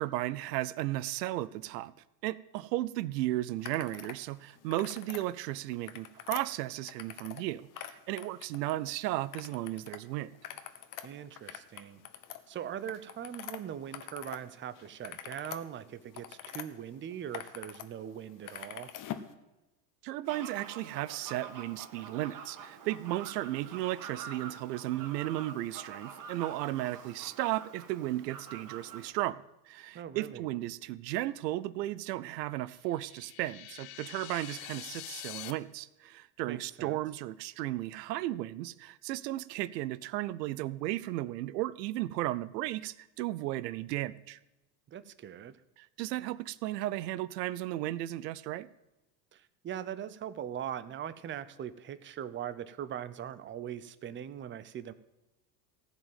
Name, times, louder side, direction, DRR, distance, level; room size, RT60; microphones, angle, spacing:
voice 1, 0.0-1.9 2.2-10.3 20.0-44.4 45.8-48.7, right 15 dB, 75° right, 18 dB, 0.7 m, -35 dB
sound 1, 3.6-4.2 4.6-5.2 5.7-7.5 7.7-8.9 9.3-10.0 10.3-14.4 14.7-16.7 17.1-17.9 18.1-19.3, left 11 dB, 40° left, 1.2 m, -44 dB
voice 2, 11.0-12.0 12.5-18.9 29.9-30.5 36.5-37.0 44.9-45.6 49.3-54.9, right 10 dB, 25° right, 14 dB, 0.7 m, -41 dB
Fowl, 20.3-29.1, right 6 dB, 40° right, 2.0 m, -47 dB
sound 2, 32.7-35.5, left 15 dB, 65° left, 1.0 m, -45 dB
15.0 x 5.2 x 9.3 m, 1.0 s
hypercardioid pair, 95°, 49 cm